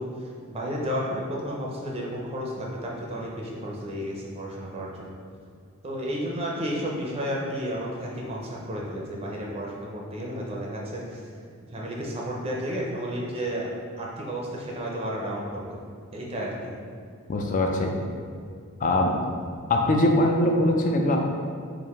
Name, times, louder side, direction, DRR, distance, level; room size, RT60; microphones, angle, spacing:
voice 1, 0.0-5.2 5.8-11.2 11.7-13.7 14.0-15.8 16.1-16.7, equal, 25° right, -3 dB, 0.5 m, -32 dB
voice 2, 17.3-17.9 18.8-19.2 19.7-21.2, left 1 dB, 35° left, 2 dB, 0.4 m, -22 dB
4.7 x 2.5 x 3.4 m, 2.2 s
head